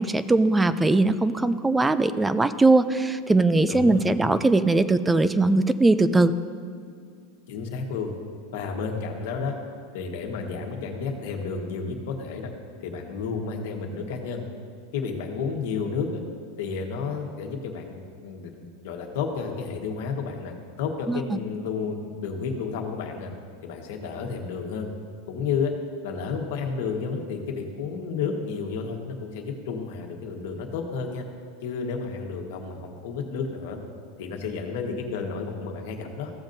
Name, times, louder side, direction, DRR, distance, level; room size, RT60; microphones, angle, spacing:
voice 1, 0.0-6.3 21.1-21.2, right 2 dB, 10° right, 13 dB, 0.3 m, -20 dB
voice 2, 3.7-4.1 7.5-8.1 8.5-9.5 9.9-12.5 12.8-14.4 14.9-16.2 16.6-23.3 23.6-24.9 25.3-25.7 26.0-31.2 31.6-33.8 34.2-36.3, left 5 dB, 65° left, 2 dB, 1.4 m, -31 dB
15.5 x 7.2 x 2.6 m, 2.2 s
supercardioid pair, 160°, 0 cm